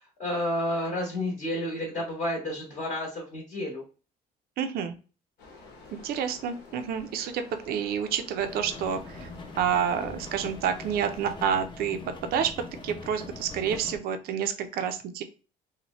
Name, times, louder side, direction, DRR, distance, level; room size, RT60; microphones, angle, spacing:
voice 1, 0.2-3.8, left 1 dB, 45° left, -2 dB, 1.0 m, -30 dB
voice 2, 4.6-4.9 6.0-9.3 9.6-15.2, right 8 dB, 65° right, 8 dB, 0.4 m, -29 dB
sound 1, 5.4-11.3, left 3 dB, 80° left, 1.1 m, -50 dB
sound 2, 8.4-14.0, left 3 dB, 30° left, 0.5 m, -42 dB
2.8 x 2.1 x 2.9 m, 0.34 s
cardioid pair, 110°, 17 cm